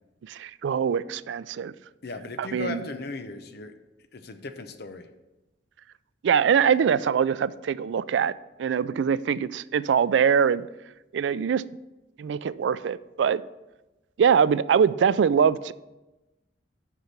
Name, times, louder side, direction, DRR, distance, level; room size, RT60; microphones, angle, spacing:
voice 1, 0.2-1.7 2.4-2.8 6.2-8.3 8.6-10.7 11.1-11.6 12.2-13.4 14.2-15.7, right 7 dB, 85° right, 17 dB, 0.3 m, -23 dB
voice 2, 2.0-3.7 4.1-5.1, left 3 dB, 60° left, 8 dB, 0.8 m, -37 dB
8.2 x 5.9 x 5.8 m, 1.0 s
head